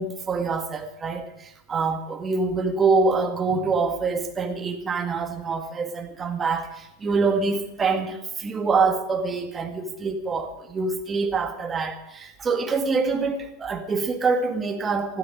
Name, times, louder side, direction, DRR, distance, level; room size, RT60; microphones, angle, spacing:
voice 1, 0.0-15.2, right 4 dB, 20° right, 6 dB, 2.0 m, -25 dB
20.5 x 13.0 x 5.2 m, 0.87 s
figure-of-eight pair, 90°, 0 cm